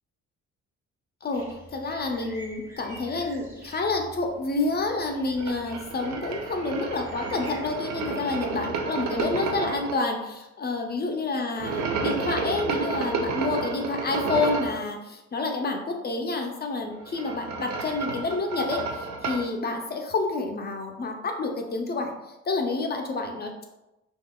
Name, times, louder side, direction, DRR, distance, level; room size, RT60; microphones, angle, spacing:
voice 1, 1.2-22.1 22.5-23.6, left 3 dB, 35° left, 3 dB, 0.5 m, -29 dB
sound 1, 1.3-7.7, equal, 10° right, 0.8 m, -47 dB
sound 2, 5.4-9.9 11.6-14.8 16.9-19.5, right 4 dB, 65° right, 0.5 m, -31 dB
3.6 x 2.8 x 2.2 m, 0.95 s
cardioid pair, 90°, 30 cm